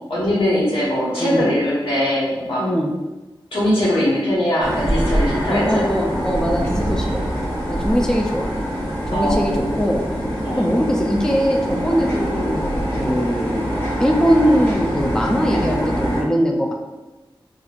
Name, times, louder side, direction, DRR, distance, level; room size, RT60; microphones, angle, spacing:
voice 1, 0.1-2.6 3.5-5.9 6.6-7.2 9.1-10.0 10.4-10.7, left 1 dB, 85° left, -7 dB, 1.3 m, -21 dB
voice 2, 2.6-2.9 5.5-7.2 7.7-8.5 9.1-10.0 10.6-13.6 14.0-16.7, equal, 5° left, 0 dB, 0.4 m, -21 dB
sound 1, 4.6-16.2, equal, 25° left, 1.3 m, -24 dB
4.2 x 2.5 x 2.4 m, 1.1 s
wide cardioid pair, 55°, 9 cm